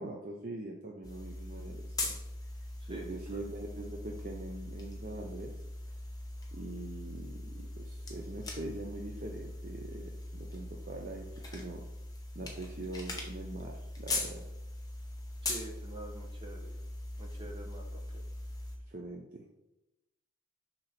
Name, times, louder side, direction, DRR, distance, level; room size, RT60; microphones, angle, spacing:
voice 1, 0.0-2.1 2.9-5.5 6.5-11.9 12.3-14.5 18.9-19.4, right 2 dB, 40° right, 0 dB, 0.6 m, -43 dB
sound 1, 1.0-18.8, left 2 dB, 15° left, 1.0 m, -41 dB
voice 2, 15.4-16.7 17.2-18.0, right 2 dB, 25° right, 0 dB, 1.1 m, -46 dB
6.6 x 3.0 x 5.8 m, 0.93 s
head